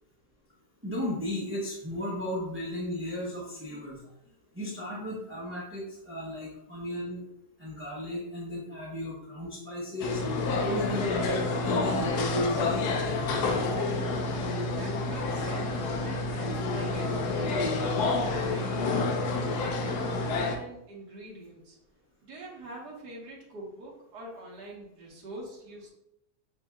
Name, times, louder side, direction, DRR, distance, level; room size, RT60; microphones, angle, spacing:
voice 1, 0.8-4.0 4.5-7.2 7.6-10.2 10.6-13.0, left 1 dB, 10° right, -6 dB, 0.7 m, -34 dB
sound 1, 10.0-20.6, left 3 dB, 85° left, 1.2 m, -29 dB
voice 2, 14.2-17.7 18.0-19.0 19.3-21.8 22.2-25.9, right 1 dB, 90° right, -3 dB, 1.8 m, -45 dB
7.5 x 2.8 x 2.3 m, 0.81 s
omnidirectional pair, 1.7 m